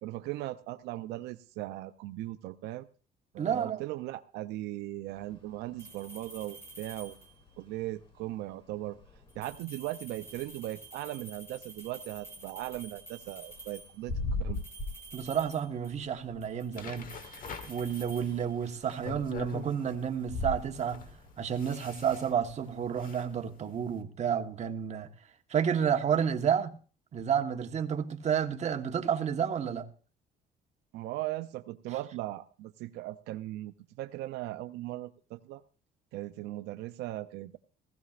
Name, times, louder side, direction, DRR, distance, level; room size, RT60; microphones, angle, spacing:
voice 1, 0.0-2.9 3.3-7.2 7.6-9.0 9.4-14.1 14.4-14.6 30.9-35.6 36.1-37.6, right 16 dB, 85° right, 0.5 m, -38 dB
voice 2, 3.4-3.8 15.1-17.1 17.7-21.0 21.4-25.1 25.5-26.7 27.1-29.9, right 8 dB, 40° right, 1.2 m, -30 dB
sound 1, 5.1-23.4, left 2 dB, 30° left, 3.5 m, -44 dB
sound 2, 5.8-7.5 9.3-14.0 14.5-16.1 16.4-18.9, right 2 dB, 15° left, 2.0 m, -50 dB
sound 3, 16.8-24.0, left 6 dB, 55° left, 1.2 m, -46 dB
16.0 x 15.5 x 2.5 m
cardioid pair, 110°, 17 cm